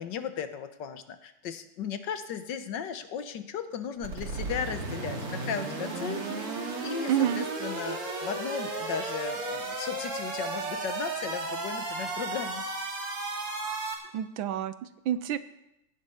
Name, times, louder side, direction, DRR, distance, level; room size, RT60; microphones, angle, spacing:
voice 1, 0.0-12.7, left 7 dB, 60° left, 10 dB, 1.4 m, -36 dB
sound 1, 4.0-13.9, right 3 dB, 85° right, 3.6 m, -34 dB
voice 2, 7.1-7.4 14.1-15.4, right 10 dB, 70° right, 13 dB, 1.3 m, -28 dB
16.5 x 10.5 x 5.6 m, 0.87 s
omnidirectional pair, 2.4 m